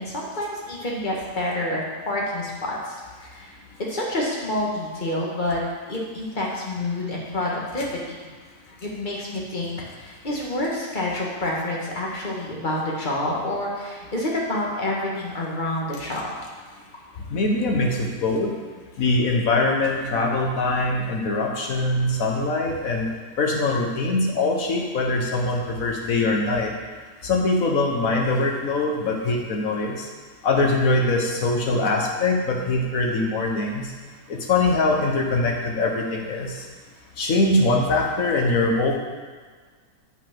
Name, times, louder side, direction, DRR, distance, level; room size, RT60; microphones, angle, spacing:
voice 1, 0.0-3.0 3.2-3.5 3.8-5.6 5.9-8.0 8.8-16.3, left 1 dB, 30° left, -4 dB, 1.7 m, -28 dB
voice 2, 17.3-18.5 19.0-23.1 23.4-26.7 27.2-29.9 30.4-33.9 34.3-36.5 37.2-39.0, left 2 dB, 55° left, 0 dB, 1.6 m, -22 dB
7.3 x 5.9 x 5.9 m, 1.5 s
omnidirectional pair, 1.8 m